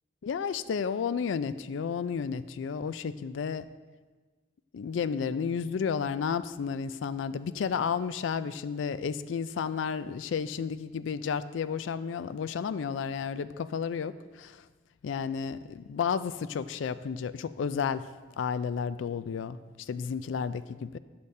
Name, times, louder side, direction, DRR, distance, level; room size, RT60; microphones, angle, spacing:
voice 1, 0.2-3.6 4.7-14.7 15.0-18.1 18.4-21.0, left 6 dB, 80° left, 14 dB, 0.3 m, -32 dB
11.0 x 8.4 x 2.7 m, 1.4 s
head